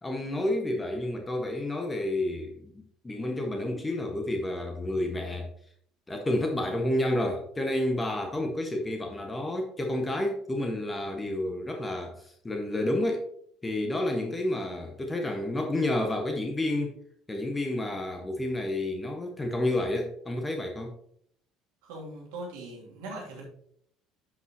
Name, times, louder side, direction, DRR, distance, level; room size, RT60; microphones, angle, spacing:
voice 1, 0.0-5.5 6.1-13.2 13.6-17.0 17.3-20.9, left 1 dB, 20° left, 3 dB, 1.4 m, -30 dB
voice 2, 21.8-23.4, right 2 dB, 65° right, -2 dB, 2.7 m, -40 dB
11.0 x 5.5 x 2.9 m, 0.64 s
figure-of-eight pair, 60°, 0 cm